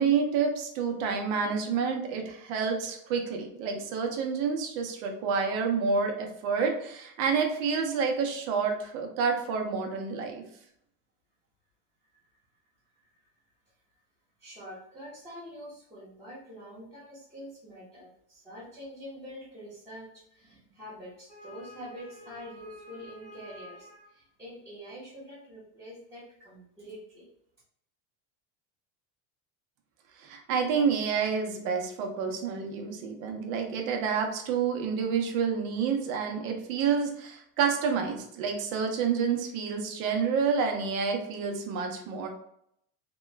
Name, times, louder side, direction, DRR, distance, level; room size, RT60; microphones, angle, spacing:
voice 1, 0.0-10.4 30.2-42.3, right 6 dB, 85° right, 3 dB, 0.8 m, -29 dB
voice 2, 14.4-27.3, equal, 10° right, -12 dB, 0.7 m, -45 dB
3.0 x 2.2 x 3.2 m, 0.72 s
cardioid pair, 165°, 40 cm